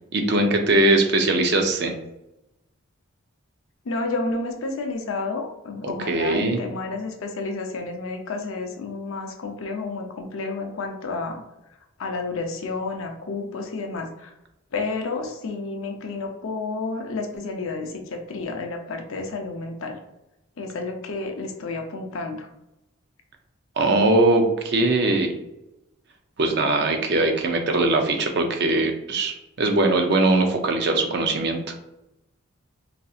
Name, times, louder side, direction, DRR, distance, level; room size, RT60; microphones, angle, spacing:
voice 1, 0.1-1.9 5.8-6.6 23.8-25.3 26.4-31.7, right 2 dB, 50° right, 4 dB, 0.5 m, -21 dB
voice 2, 3.8-11.4 12.0-14.3 14.7-20.0 20.6-22.5, left 3 dB, 75° left, 4 dB, 0.5 m, -30 dB
4.1 x 2.6 x 2.4 m, 0.90 s
head